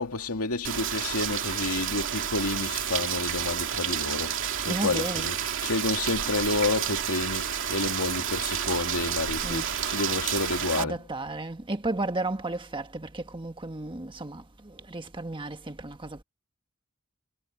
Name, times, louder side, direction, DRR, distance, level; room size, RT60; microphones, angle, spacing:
voice 1, 0.0-4.4 4.6-11.0, left 3 dB, 85° left, 2.3 m, -30 dB
Rain, 0.6-10.8, right 9 dB, 60° right, 2.6 m, -30 dB
voice 2, 4.6-5.3 9.4-9.7 10.8-16.2, right 2 dB, 25° right, 1.5 m, -33 dB
head